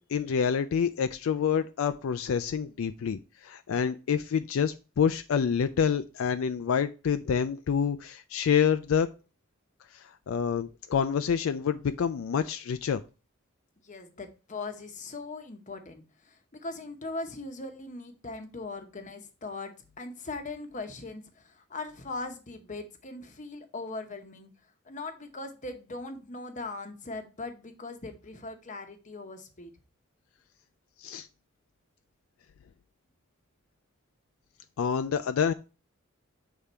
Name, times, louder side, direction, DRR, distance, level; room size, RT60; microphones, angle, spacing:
voice 1, 0.0-9.1 9.9-13.0 31.0-31.3 34.8-35.5, left 7 dB, 75° left, 10 dB, 0.4 m, -27 dB
voice 2, 13.8-24.5 24.9-29.7, left 3 dB, 35° left, 7 dB, 0.9 m, -40 dB
6.7 x 3.5 x 4.3 m, 0.32 s
head